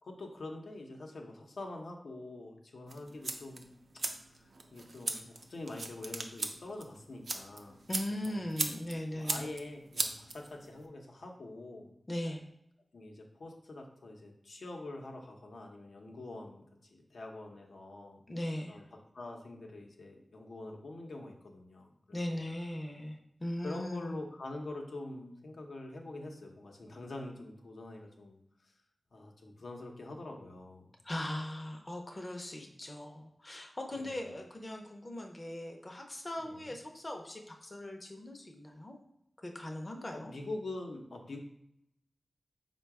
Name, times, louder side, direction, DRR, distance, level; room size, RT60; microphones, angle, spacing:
voice 1, 0.0-3.7 4.2-7.9 8.3-8.4 9.1-12.0 12.9-18.2 18.7-18.9 19.1-22.4 23.6-28.7 29.1-30.9 33.9-34.1 36.4-36.8 40.1-41.4, left 2 dB, 80° left, 1 dB, 0.7 m, -45 dB
sound 1, 2.9-10.9, right 3 dB, 65° right, 0.4 m, -39 dB
voice 2, 7.9-9.5 12.1-12.4 18.3-18.8 22.1-24.2 31.0-38.9 39.4-40.3, left 1 dB, 30° left, 2 dB, 0.5 m, -39 dB
4.7 x 2.2 x 4.6 m, 0.78 s
wide cardioid pair, 100°, 0 cm